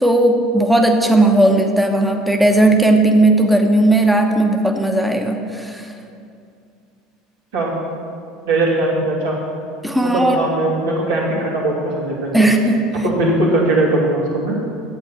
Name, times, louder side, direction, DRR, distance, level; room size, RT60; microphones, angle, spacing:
voice 1, 0.0-5.9 9.8-10.4 12.3-12.8, right 1 dB, ahead, 3 dB, 1.0 m, -15 dB
voice 2, 8.5-9.4 10.0-12.5 13.0-14.6, right 2 dB, 75° right, -5 dB, 2.6 m, -19 dB
9.0 x 7.8 x 5.8 m, 2.4 s
hypercardioid pair, 75°, 0 cm